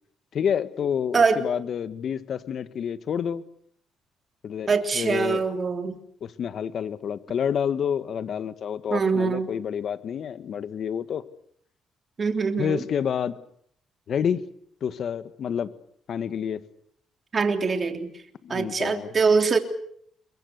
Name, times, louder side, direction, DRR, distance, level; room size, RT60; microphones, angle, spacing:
voice 1, 0.3-3.4 4.4-5.4 6.2-11.2 12.6-13.3 14.1-14.4 14.8-15.7 16.1-16.6 18.4-19.1, left 8 dB, 60° left, 1.6 m, -28 dB
voice 2, 1.1-1.4 4.7-5.9 8.9-9.5 12.2-12.8 17.3-18.1 18.5-19.6, right 5 dB, 40° right, 3.2 m, -23 dB
29.5 x 23.0 x 6.8 m
cardioid pair, 90°, 0 cm